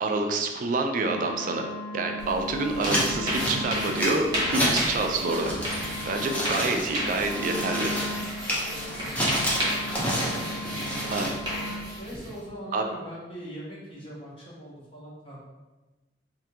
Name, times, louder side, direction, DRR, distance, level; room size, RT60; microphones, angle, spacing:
voice 1, 0.0-1.7 1.9-7.9 11.1-11.3 12.7-12.8, right 3 dB, 45° right, 4 dB, 0.3 m, -27 dB
Wind instrument woodwind instrument, 1.0-12.0, left 1 dB, 75° left, 0.4 m, -38 dB
sound 1, 2.2-12.4, equal, 25° right, 0.8 m, -33 dB
sound 2, 2.8-4.9 5.2-11.3, equal, 10° left, 0.5 m, -30 dB
voice 2, 8.5-9.9 10.8-11.2 12.0-15.4, equal, 30° left, -7 dB, 0.9 m, -42 dB
3.4 x 2.3 x 2.8 m, 1.2 s
head